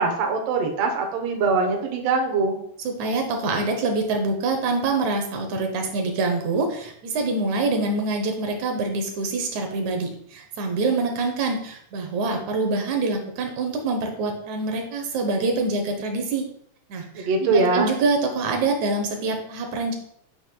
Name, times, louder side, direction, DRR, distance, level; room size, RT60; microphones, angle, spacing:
voice 1, 0.0-2.6 17.1-17.9, right 3 dB, 90° right, 2 dB, 1.4 m, -22 dB
voice 2, 2.8-16.4 16.9-19.9, right 3 dB, 75° right, 4 dB, 1.7 m, -25 dB
9.1 x 6.1 x 2.2 m, 0.69 s
omnidirectional pair, 4.3 m